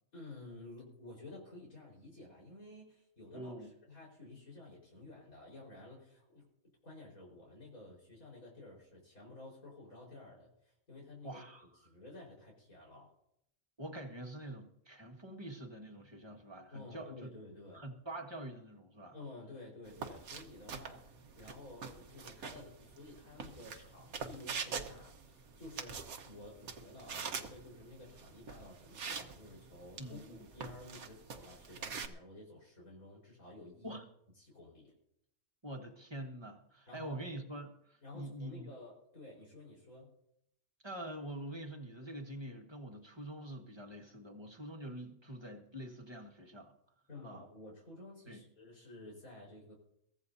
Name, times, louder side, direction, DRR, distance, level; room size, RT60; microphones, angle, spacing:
voice 1, 0.1-6.4 6.8-11.4 11.8-13.1 16.7-17.8 19.1-34.0 34.4-34.9 36.9-37.2 38.0-40.1 47.1-49.7, left 2 dB, 75° left, -4 dB, 5.2 m, -52 dB
voice 2, 3.3-3.7 11.2-11.7 13.8-17.3 17.7-19.1 30.0-30.5 33.8-34.0 35.6-38.7 40.8-46.7 47.2-47.4 48.3-48.4, right 1 dB, 20° right, 2 dB, 1.6 m, -45 dB
sound 1, 19.9-32.1, right 5 dB, 80° right, 1.6 m, -45 dB
23.0 x 15.5 x 2.8 m, 0.78 s
omnidirectional pair, 1.5 m